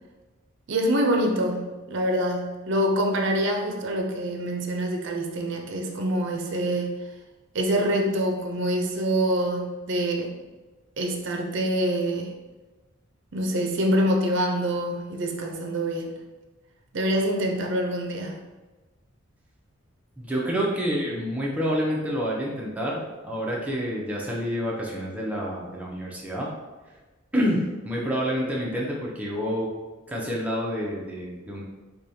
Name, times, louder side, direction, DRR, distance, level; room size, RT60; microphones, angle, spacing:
voice 1, 0.7-6.9 7.5-10.3 11.0-12.3 13.3-16.2 16.9-18.5, equal, 60° right, 2 dB, 0.5 m, -25 dB
voice 2, 20.2-26.5 27.3-29.7 30.1-31.6, equal, 5° right, -4 dB, 0.6 m, -28 dB
4.7 x 2.3 x 2.7 m, 1.2 s
head